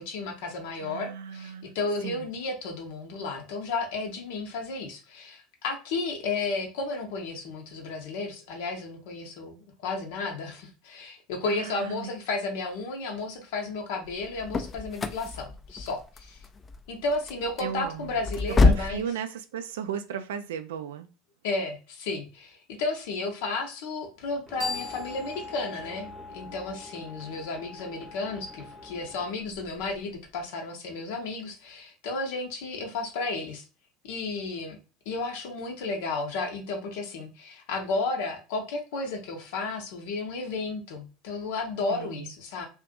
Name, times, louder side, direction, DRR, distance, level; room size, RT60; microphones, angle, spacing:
voice 1, 0.0-16.4 16.9-19.1 21.4-33.6 34.0-34.8 35.1-42.6, left 3 dB, 60° left, 0.6 m, -33 dB
voice 2, 0.8-1.7 2.0-2.3 11.5-12.1 17.6-18.2 18.5-21.1 41.9-42.3, right 8 dB, 65° right, 0.3 m, -35 dB
sound 1, 14.1-19.0, left 3 dB, 25° left, 0.3 m, -27 dB
sound 2, 24.2-29.3, left 4 dB, 40° right, 0.8 m, -41 dB
sound 3, 24.5-30.5, equal, 5° right, 0.7 m, -50 dB
2.5 x 2.4 x 2.4 m
figure-of-eight pair, 70°, 0 cm